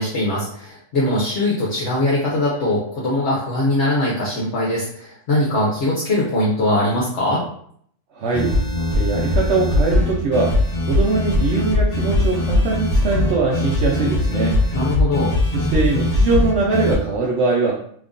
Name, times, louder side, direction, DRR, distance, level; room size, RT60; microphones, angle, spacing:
voice 1, 0.0-7.4 14.7-15.4, left 1 dB, 65° left, -5 dB, 1.1 m, -21 dB
voice 2, 8.1-8.5 8.9-10.5 10.9-14.6 15.5-17.7, right 3 dB, 65° right, -3 dB, 0.9 m, -21 dB
sound 1, 8.3-17.0, left 2 dB, 35° left, 0.7 m, -20 dB
3.0 x 2.6 x 3.6 m, 0.62 s
omnidirectional pair, 1.4 m